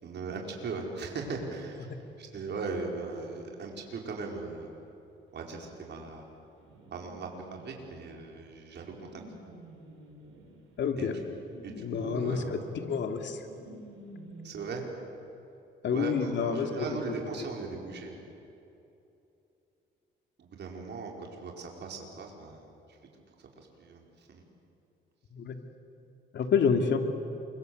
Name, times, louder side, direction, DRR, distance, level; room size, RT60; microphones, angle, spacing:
voice 1, 0.0-4.7 5.3-6.3 6.9-9.2 11.0-11.2 11.6-12.5 14.4-14.8 15.9-18.3 20.4-23.0 23.4-24.4, right 4 dB, 60° right, 1 dB, 5.1 m, -39 dB
sound 1, 5.6-14.7, right 1 dB, 90° right, 6.2 m, -51 dB
voice 2, 10.8-11.2 11.8-12.6 12.9-13.4 15.8-16.7 25.3-25.6 26.3-27.0, left 6 dB, 65° left, 5 dB, 2.9 m, -28 dB
28.5 x 24.5 x 8.1 m, 2.8 s
cardioid pair, 90°, 20 cm